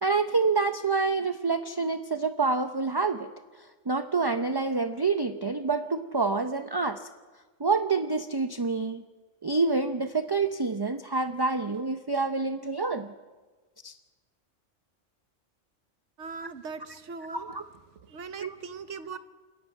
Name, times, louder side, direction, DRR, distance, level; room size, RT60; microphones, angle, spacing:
voice 1, 0.0-3.3 3.9-7.0 7.6-9.0 9.4-13.1 13.8-13.9 17.3-17.6 18.4-18.5, right 4 dB, 30° right, 9 dB, 0.5 m, -27 dB
voice 2, 16.2-17.6 17.9-19.2, right 5 dB, 70° right, 11 dB, 1.4 m, -40 dB
28.0 x 11.5 x 9.1 m, 1.3 s
omnidirectional pair, 1.3 m